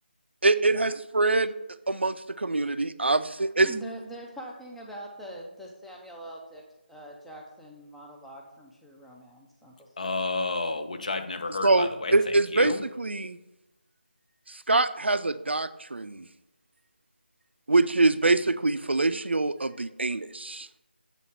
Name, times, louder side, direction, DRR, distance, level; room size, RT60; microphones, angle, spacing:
voice 1, 0.4-1.5 1.9-3.7 11.6-13.4 14.7-16.2 17.7-20.7, right 2 dB, 80° right, 13 dB, 0.4 m, -24 dB
voice 2, 3.6-6.6 6.9-10.2, right 1 dB, ahead, -2 dB, 0.5 m, -43 dB
voice 3, 10.0-12.8, left 3 dB, 45° left, 8 dB, 0.6 m, -31 dB
7.5 x 4.0 x 5.6 m, 0.97 s
figure-of-eight pair, 160°, 6 cm